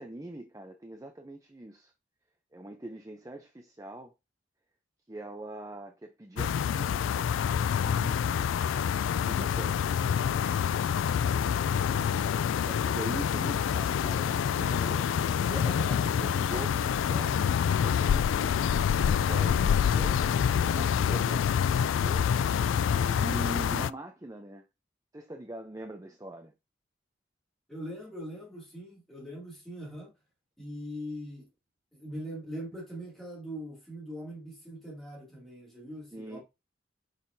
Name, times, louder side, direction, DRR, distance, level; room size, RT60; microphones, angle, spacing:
voice 1, 0.0-1.9 2.5-4.1 5.1-7.0 7.8-8.6 9.2-9.8 12.5-20.3 20.6-24.6 25.1-26.5 36.1-36.4, right 1 dB, 15° right, 0.5 m, -42 dB
sound 1, 6.4-23.9, left 8 dB, 90° left, 0.3 m, -27 dB
voice 2, 11.6-12.1 27.7-30.1 30.6-31.5 31.9-36.4, equal, ahead, 2.5 m, -41 dB
6.4 x 5.7 x 2.7 m
head